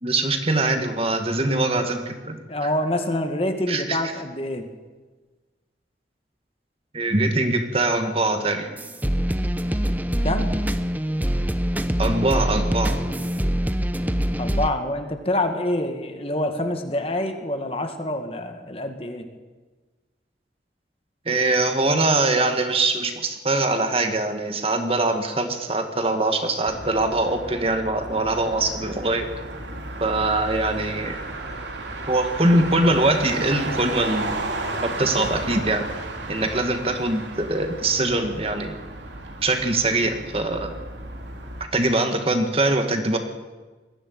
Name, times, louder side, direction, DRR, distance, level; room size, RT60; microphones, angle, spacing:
voice 1, 0.0-2.7 3.7-4.0 6.9-8.7 12.0-13.0 21.3-29.3 30.0-31.2 32.1-34.4 34.8-35.9 36.3-38.8 39.4-40.7 41.7-43.2, right 2 dB, 30° right, 6 dB, 2.0 m, -23 dB
voice 2, 2.5-4.7 10.2-10.5 14.4-19.3, left 1 dB, 30° left, 6 dB, 2.0 m, -26 dB
sound 1, 8.8-14.7, equal, 10° right, 0.8 m, -24 dB
Motor vehicle (road), 26.7-41.6, right 2 dB, 75° right, 3.2 m, -33 dB
21.0 x 15.0 x 9.4 m, 1.3 s
head